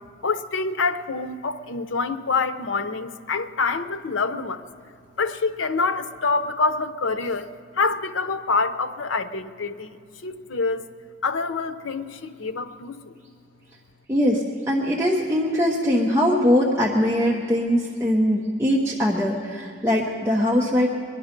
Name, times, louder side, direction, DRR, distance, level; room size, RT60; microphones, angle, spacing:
voice 1, 0.2-4.6 5.2-10.9 11.2-13.1, left 4 dB, 85° left, 11 dB, 0.7 m, -26 dB
voice 2, 14.1-20.9, equal, 15° right, -3 dB, 0.9 m, -21 dB
22.0 x 11.0 x 5.2 m, 2.5 s
head